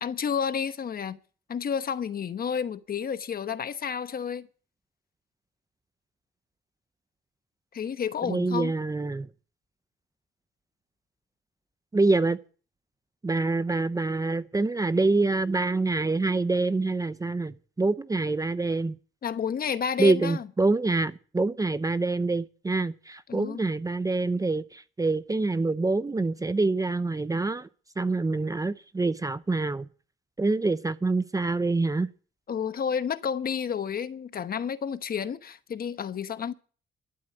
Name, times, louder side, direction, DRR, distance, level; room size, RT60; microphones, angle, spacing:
voice 1, 0.0-1.2 1.5-4.5 7.7-8.7 19.2-20.5 23.3-23.6 32.5-36.5, left 7 dB, 50° left, 1.1 m, -30 dB
voice 2, 8.2-9.3 11.9-12.4 13.2-19.0 20.0-27.7 28.0-29.9 30.4-32.1, right 3 dB, 15° right, 0.7 m, -26 dB
12.5 x 8.6 x 7.9 m
cardioid pair, 90°, 20 cm